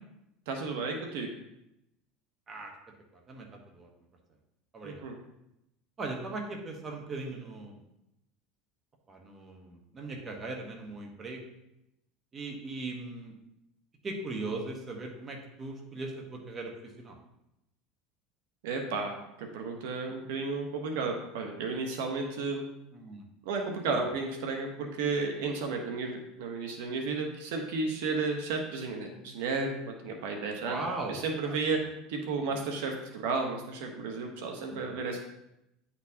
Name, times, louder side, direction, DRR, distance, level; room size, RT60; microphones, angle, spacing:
voice 1, 0.5-1.3 4.8-5.1 18.6-22.7 23.4-30.8 31.1-31.8 32.1-35.2, right 4 dB, 80° right, 3 dB, 1.0 m, -33 dB
voice 2, 3.1-3.5 3.7-3.9 4.7-5.0 6.0-7.8 9.1-11.4 12.3-13.3 14.0-17.1 22.9-23.2 30.6-31.1 31.4-31.6 34.8-35.0, right 2 dB, 25° right, 1 dB, 1.2 m, -39 dB
9.7 x 4.3 x 2.8 m, 0.86 s
supercardioid pair, 125°, 0 cm